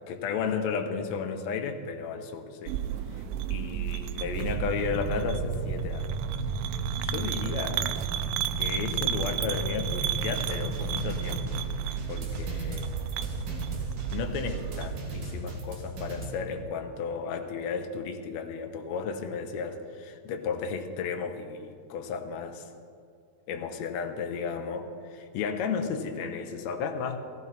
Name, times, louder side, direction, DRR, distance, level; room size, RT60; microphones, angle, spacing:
voice 1, 0.1-2.7 3.5-6.1 7.0-7.8 8.6-11.6 12.1-12.9 14.1-22.7 23.5-24.8 25.1-27.2, left 6 dB, 85° left, 6 dB, 1.5 m, -33 dB
sound 1, 2.7-15.0, right 12 dB, 90° right, 2.6 m, -33 dB
sound 2, 4.2-11.6, right 1 dB, 30° right, 3.5 m, -35 dB
sound 3, 10.2-16.3, right 1 dB, 55° right, 3.1 m, -38 dB
16.5 x 15.5 x 4.2 m, 2.3 s
omnidirectional pair, 4.5 m